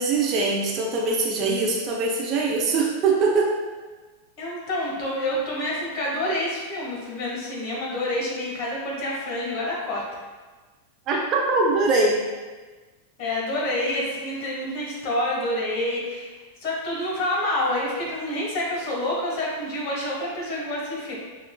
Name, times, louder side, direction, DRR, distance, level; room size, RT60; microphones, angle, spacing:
voice 1, 0.0-3.5 11.1-12.2, right 3 dB, 35° right, -1 dB, 0.6 m, -22 dB
voice 2, 4.4-10.2 13.2-21.1, left 1 dB, 45° left, -4 dB, 1.5 m, -28 dB
5.9 x 2.4 x 2.2 m, 1.3 s
figure-of-eight pair, 90°, 0 cm